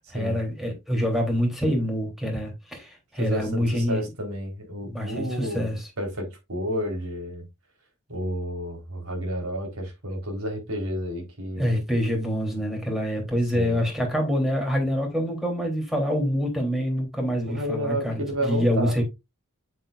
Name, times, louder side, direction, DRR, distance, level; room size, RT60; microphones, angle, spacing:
voice 1, 0.1-4.1 4.9-5.9 11.6-19.0, equal, ahead, 3.4 m, -26 dB
voice 2, 3.1-5.6 6.0-7.5 8.1-11.7 13.5-13.8 17.4-19.0, equal, 75° right, 4.2 m, -31 dB
7.8 x 7.5 x 2.5 m
head